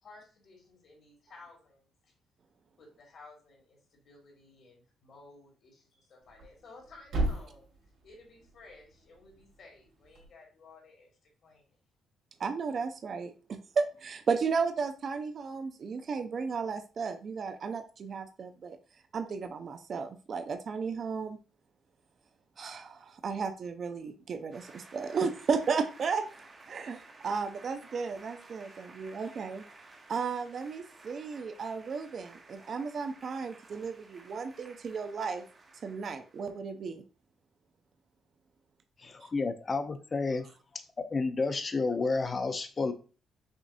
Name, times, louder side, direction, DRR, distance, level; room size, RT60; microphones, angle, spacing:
voice 1, 0.0-2.1 2.8-7.7 8.0-11.8, left 3 dB, 60° left, 0 dB, 2.1 m, -55 dB
Thump thud, 6.2-10.3, right 2 dB, 75° right, 2.3 m, -38 dB
voice 2, 12.4-13.3 13.8-18.8 19.1-21.4 22.6-22.8 23.2-24.6 24.9-26.2 26.7-27.0 27.2-29.6 30.1-33.9 34.3-35.4 35.8-37.0, right 5 dB, 50° right, 7 dB, 0.5 m, -34 dB
sound 1, 24.5-36.6, right 3 dB, 35° right, 0.9 m, -54 dB
voice 3, 39.0-40.5 41.1-42.9, left 3 dB, 35° left, 8 dB, 0.6 m, -30 dB
6.2 x 2.6 x 2.6 m, 0.35 s
cardioid pair, 90°, 0 cm